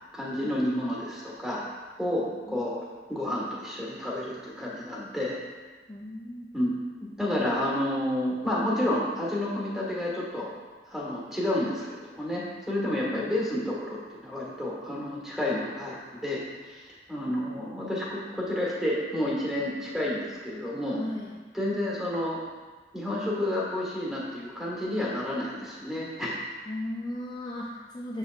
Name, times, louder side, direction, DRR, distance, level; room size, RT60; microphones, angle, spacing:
voice 1, 0.1-1.6 2.0-2.8 3.1-5.4 6.5-10.5 10.9-21.0 21.5-22.4 22.9-26.4, left 1 dB, ahead, -5 dB, 1.5 m, -30 dB
voice 2, 2.3-2.9 5.9-6.5 13.1-13.3 17.3-17.8 21.0-21.3 26.7-28.2, left 1 dB, 25° left, -4 dB, 0.5 m, -37 dB
7.1 x 6.9 x 2.4 m, 1.3 s
head